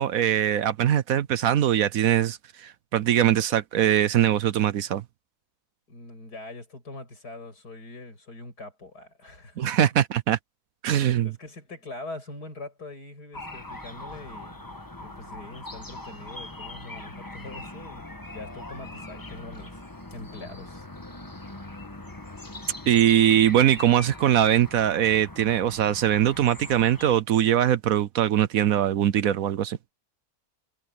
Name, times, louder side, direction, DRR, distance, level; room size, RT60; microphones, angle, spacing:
voice 1, 0.0-5.0 9.6-10.4 10.8-11.3 22.9-29.8, right 11 dB, 65° right, 1.1 m, -22 dB
voice 2, 5.9-9.9 11.2-19.8 20.1-20.9, left 2 dB, 80° left, 7.8 m, -43 dB
sound 1, 13.3-27.2, left 2 dB, 15° left, 1.3 m, -41 dB
omnidirectional pair, 1.7 m